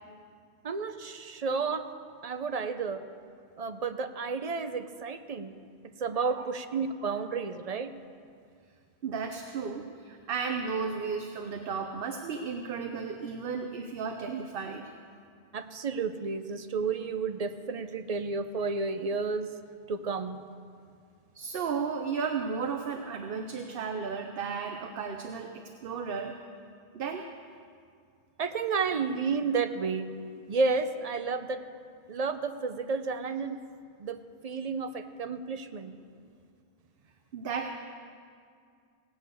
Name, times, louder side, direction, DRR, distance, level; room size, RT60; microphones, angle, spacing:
voice 1, 0.6-1.9 2.2-3.0 3.6-5.5 6.0-7.9 15.5-19.5 19.9-20.4 28.4-30.1 30.5-31.6 32.1-33.6 34.0-36.0, right 4 dB, 45° right, 9 dB, 0.5 m, -31 dB
voice 2, 6.1-6.5 7.0-7.2 9.0-14.9 21.3-26.4 26.9-27.3 37.3-37.7, right 5 dB, 65° right, 5 dB, 0.9 m, -34 dB
17.5 x 6.4 x 8.1 m, 2.2 s
omnidirectional pair, 1.1 m